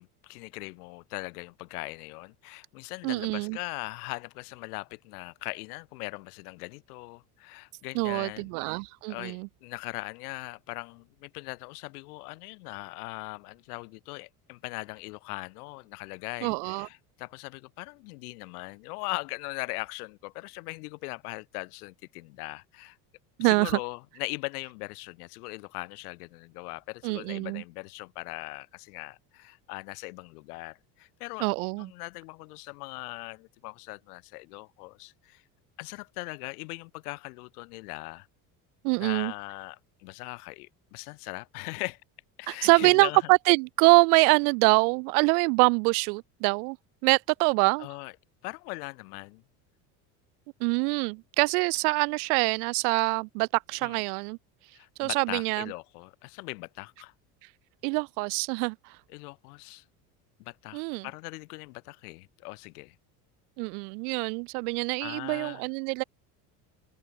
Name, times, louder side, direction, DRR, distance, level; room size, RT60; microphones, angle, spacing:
voice 1, 0.0-8.8 9.1-23.0 23.4-35.4 35.8-38.3 39.0-42.0 42.4-43.3 47.8-48.1 48.4-49.4 53.8-54.0 54.7-57.1 59.1-59.8 60.4-63.0 65.0-65.7, left 25 dB, 80° left, 1.3 m, -40 dB
voice 2, 3.0-3.6 8.0-9.5 16.4-16.9 23.4-23.8 27.0-27.6 31.4-31.9 38.8-39.3 42.5-46.8 47.0-47.9 50.6-54.4 55.0-55.7 57.8-59.0 60.7-61.1 63.6-66.0, right 33 dB, 75° right, 0.7 m, -25 dB
supercardioid pair, 85°, 44 cm